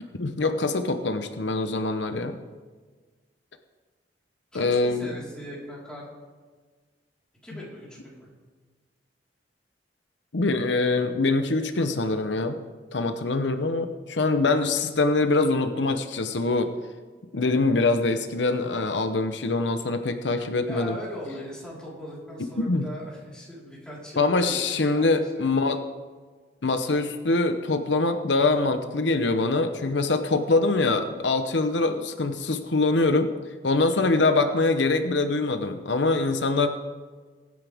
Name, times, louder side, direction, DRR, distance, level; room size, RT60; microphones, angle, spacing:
voice 1, 0.2-2.4 4.5-5.1 10.3-12.6 12.9-16.7 17.3-21.0 22.6-22.9 24.2-25.8 26.6-33.3 33.6-36.7, left 3 dB, 85° left, 8 dB, 0.9 m, -24 dB
voice 2, 4.5-6.1 7.4-8.3 20.7-25.8, equal, 5° left, -7 dB, 4.2 m, -40 dB
22.0 x 9.5 x 3.5 m, 1.4 s
head